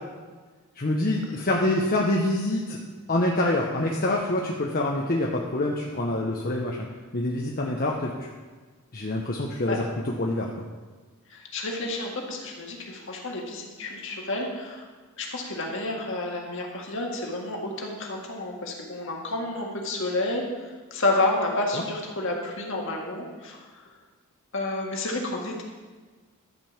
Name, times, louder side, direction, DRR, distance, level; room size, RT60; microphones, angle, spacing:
voice 1, 0.8-2.8 3.1-6.9 7.1-8.3 8.9-10.5 21.7-21.8, left 1 dB, 40° left, -1 dB, 0.9 m, -26 dB
voice 2, 11.3-14.9 15.2-23.6 24.5-25.6, left 2 dB, 60° left, 0 dB, 1.9 m, -30 dB
12.0 x 5.3 x 7.3 m, 1.4 s
head